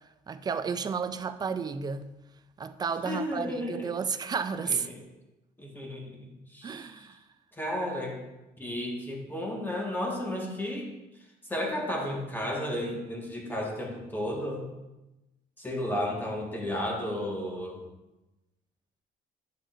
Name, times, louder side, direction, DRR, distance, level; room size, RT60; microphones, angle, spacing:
voice 1, 0.3-2.1 2.6-4.9 6.6-7.2, right 6 dB, 25° right, 0.4 m, -32 dB
voice 2, 3.0-3.9 4.7-5.0 5.6-7.1 7.5-8.2 8.6-10.9 11.5-14.7 15.6-17.8, left 1 dB, 10° left, 1.6 m, -33 dB
9.2 x 6.4 x 2.6 m
cardioid pair, 110°, 17 cm